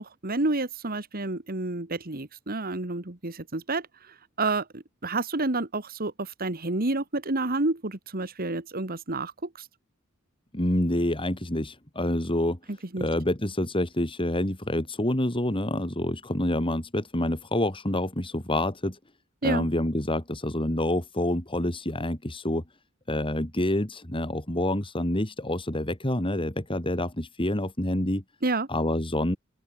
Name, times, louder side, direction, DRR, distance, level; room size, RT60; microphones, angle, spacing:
voice 1, 0.0-9.7 12.9-13.1 19.4-19.7 28.4-28.7, right 2 dB, 45° right, 2.0 m, -29 dB
voice 2, 10.5-12.6 13.0-19.0 19.4-22.6 23.1-28.2 28.7-29.4, left 1 dB, 25° left, 3.2 m, -27 dB
open air
head